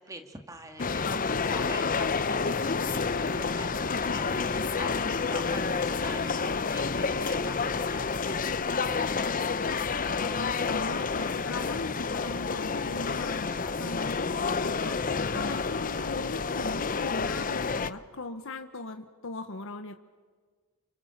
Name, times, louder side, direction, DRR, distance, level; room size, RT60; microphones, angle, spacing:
voice 1, 0.0-9.5, right 1 dB, 15° right, 5 dB, 2.4 m, -46 dB
sound 1, 0.8-17.9, left 4 dB, 35° left, 0.7 m, -29 dB
voice 2, 10.2-20.0, left 3 dB, 60° left, 6 dB, 1.1 m, -39 dB
29.0 x 25.0 x 7.4 m, 1.5 s
head